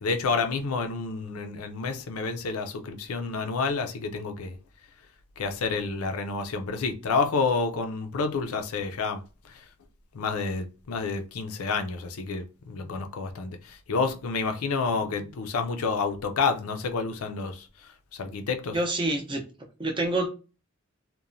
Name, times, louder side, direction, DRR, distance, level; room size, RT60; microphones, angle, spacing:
voice 1, 0.0-4.6 5.4-9.2 10.1-17.7 18.1-18.8, left 4 dB, 85° left, 0.5 m, -29 dB
voice 2, 18.7-19.4 19.8-20.3, right 2 dB, 25° right, 0.5 m, -26 dB
2.9 x 2.1 x 2.5 m
head